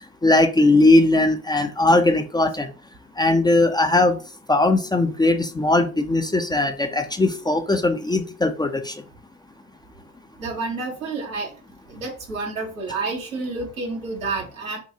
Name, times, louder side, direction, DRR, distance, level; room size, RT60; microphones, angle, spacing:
voice 1, 0.2-2.7 3.2-4.2 4.5-8.9, left 2 dB, 10° left, 6 dB, 0.5 m, -19 dB
voice 2, 10.4-11.5 11.9-14.8, right 3 dB, 80° right, 1 dB, 1.2 m, -29 dB
6.4 x 2.3 x 2.8 m, 0.36 s
figure-of-eight pair, 55°, 40 cm